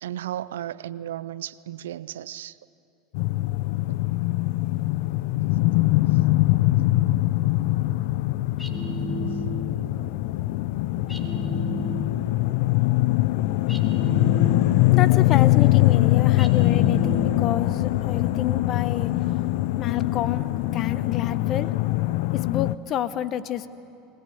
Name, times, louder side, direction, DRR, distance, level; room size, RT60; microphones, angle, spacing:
voice 1, 0.0-2.6, right 12 dB, 80° right, 0.5 m, -34 dB
sound 1, 3.1-22.8, left 17 dB, 70° left, 0.5 m, -22 dB
sound 2, 8.6-9.9 11.1-12.4 13.7-15.1 16.4-17.7, equal, 5° left, 2.5 m, -32 dB
voice 2, 14.9-19.2 19.8-21.8 22.3-23.7, left 11 dB, 50° left, 0.9 m, -29 dB
21.0 x 20.0 x 8.6 m
hypercardioid pair, 85°, 0 cm